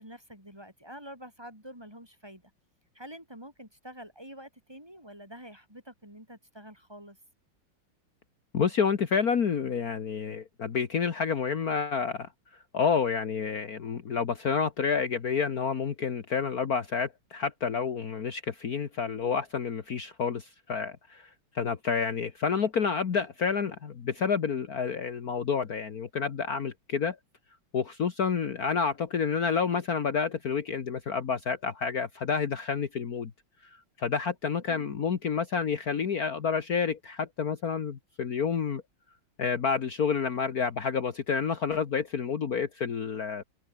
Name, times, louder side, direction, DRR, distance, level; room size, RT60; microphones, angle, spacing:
voice 1, 0.0-2.4 2.9-7.2 34.7-34.9, equal, 10° right, 6.2 m, -47 dB
voice 2, 8.5-12.3 12.7-21.3 21.6-27.2 27.7-33.3 34.0-38.8 39.4-43.4, left 6 dB, 50° left, 1.9 m, -29 dB
omnidirectional pair, 2.1 m